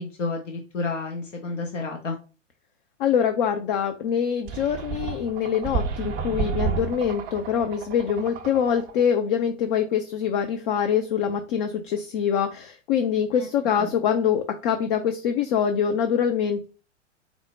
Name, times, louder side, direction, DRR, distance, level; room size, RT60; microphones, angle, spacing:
voice 1, 0.0-2.2 13.3-13.5 13.8-13.9, left 3 dB, 80° left, 2 dB, 0.8 m, -31 dB
voice 2, 3.0-16.6, left 8 dB, 45° left, 7 dB, 0.5 m, -24 dB
sound 1, 4.5-9.0, right 6 dB, 25° right, 0.5 m, -31 dB
4.3 x 2.0 x 4.3 m, 0.34 s
figure-of-eight pair, 100°, 37 cm